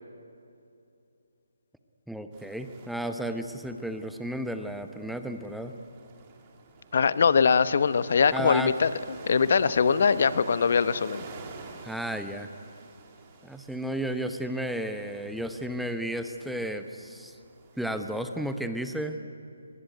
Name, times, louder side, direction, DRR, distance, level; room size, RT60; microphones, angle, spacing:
voice 1, 2.1-5.7 8.3-8.7 11.8-12.5 13.4-17.3 17.8-19.2, right 1 dB, ahead, 7 dB, 0.9 m, -33 dB
sound 1, 2.3-18.6, right 4 dB, 25° right, 2.7 m, -48 dB
voice 2, 6.9-8.9 9.3-11.2, left 6 dB, 55° left, 14 dB, 1.0 m, -22 dB
24.0 x 19.5 x 9.3 m, 2.5 s
hypercardioid pair, 155°, 0 cm